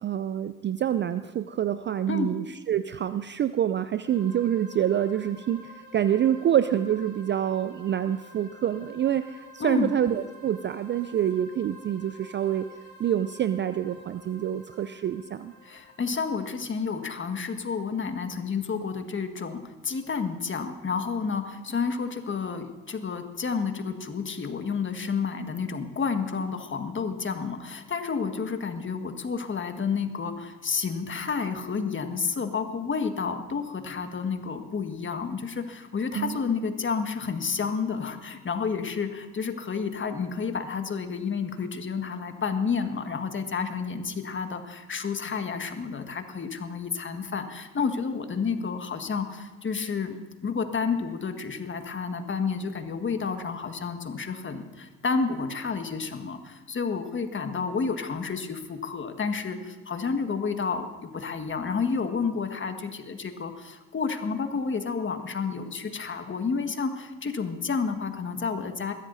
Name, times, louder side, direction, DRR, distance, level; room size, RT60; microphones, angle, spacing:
voice 1, 0.0-12.7 13.0-15.5 36.2-36.4, right 10 dB, 30° right, 13 dB, 0.4 m, -27 dB
sound 1, 4.0-17.6, right 1 dB, 80° left, 2.1 m, -50 dB
voice 2, 15.6-68.9, left 5 dB, 30° left, 7 dB, 1.6 m, -30 dB
21.5 x 15.0 x 2.7 m, 1.2 s
hypercardioid pair, 65°, 41 cm